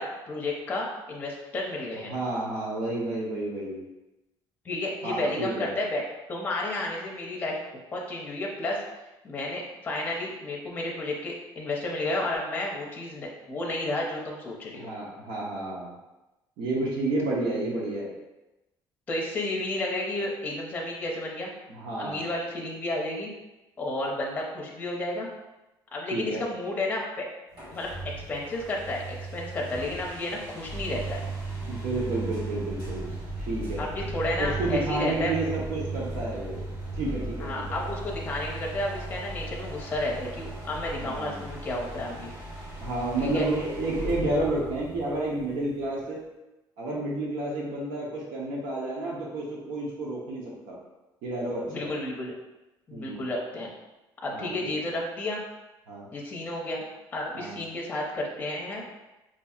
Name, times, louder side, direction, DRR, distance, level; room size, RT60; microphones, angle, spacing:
voice 1, 0.0-2.1 4.6-6.0 6.3-8.8 9.2-14.9 19.1-21.5 22.0-23.3 23.8-25.3 25.9-27.3 27.7-31.2 33.8-35.5 37.4-42.3 43.2-43.5 51.7-52.3 52.9-53.7 54.2-55.4 56.1-56.8 57.1-58.8, left 2 dB, 20° left, -2 dB, 0.6 m, -32 dB
voice 2, 2.1-3.8 5.0-5.7 14.7-15.9 16.6-18.1 21.7-22.3 26.1-26.4 31.6-33.1 33.5-33.8 34.4-36.6 36.9-37.8 41.0-41.5 42.8-46.2 46.8-50.8 51.2-51.9 52.9-53.3 54.3-54.7 55.9-56.1 57.3-57.6, right 2 dB, 85° right, -4 dB, 0.8 m, -30 dB
sound 1, 27.5-46.0, right 2 dB, 55° right, 1.2 m, -37 dB
4.6 x 2.7 x 2.3 m, 1.0 s
cardioid pair, 160°, 8 cm